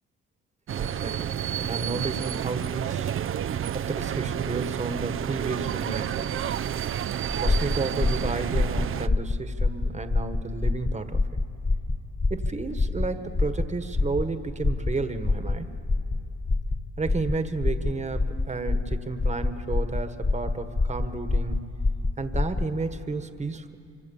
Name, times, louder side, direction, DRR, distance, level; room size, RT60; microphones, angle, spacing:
voice 1, 0.7-3.1 3.7-6.4 7.3-11.2 12.3-15.7 17.0-21.6 22.2-23.8, right 3 dB, 25° right, 9 dB, 1.4 m, -32 dB
sound 1, 0.7-9.1, right 10 dB, 45° right, 0.5 m, -30 dB
sound 2, 7.3-22.7, left 3 dB, 25° left, 1.5 m, -26 dB
26.0 x 24.5 x 7.1 m, 2.4 s
cardioid pair, 90°, 30 cm